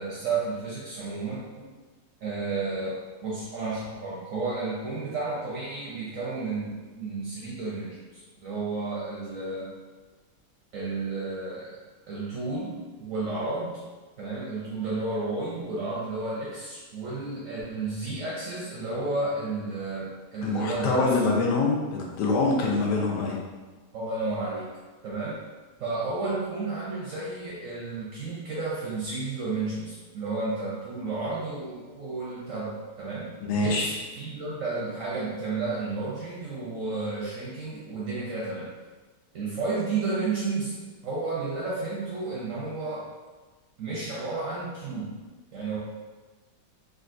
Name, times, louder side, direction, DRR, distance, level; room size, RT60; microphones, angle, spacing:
voice 1, 0.0-1.7 2.2-9.7 10.7-11.7 12.1-13.8 14.2-21.0 23.9-24.7 25.0-25.4 25.8-38.7 39.3-43.1 43.8-45.2 45.5-45.8, right 3 dB, 70° right, -6 dB, 0.8 m, -32 dB
voice 2, 20.4-23.4 33.4-33.9, left 3 dB, 75° left, -2 dB, 1.2 m, -25 dB
3.8 x 2.3 x 2.5 m, 1.3 s
omnidirectional pair, 1.9 m